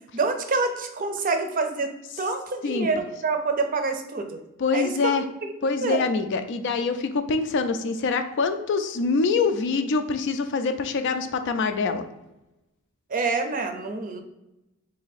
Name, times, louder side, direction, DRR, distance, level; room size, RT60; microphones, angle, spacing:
voice 1, 0.1-4.4 4.7-5.1 5.4-5.5 5.8-6.0 13.1-14.2, right 3 dB, 40° right, 6 dB, 0.5 m, -27 dB
voice 2, 4.6-5.2 5.6-12.0, left 4 dB, 60° left, 8 dB, 0.4 m, -25 dB
4.0 x 2.7 x 4.0 m, 0.95 s
head